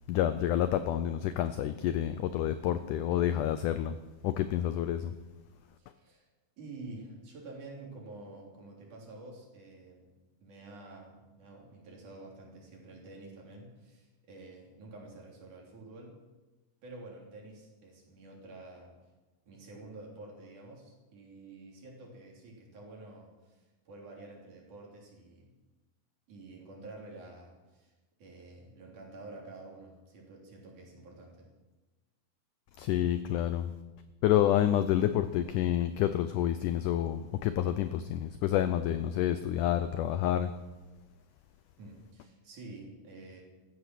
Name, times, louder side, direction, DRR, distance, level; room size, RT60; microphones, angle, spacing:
voice 1, 0.1-4.0 4.2-5.1 32.8-33.7 34.2-40.5, left 11 dB, 85° left, 11 dB, 1.8 m, -28 dB
voice 2, 5.8-6.3 6.6-10.1 10.4-16.2 16.8-19.0 19.5-25.5 26.3-27.9 28.2-31.5 41.8-43.4, right 2 dB, 55° right, -1 dB, 4.6 m, -49 dB
15.0 x 14.0 x 6.2 m, 1.2 s
omnidirectional pair, 4.4 m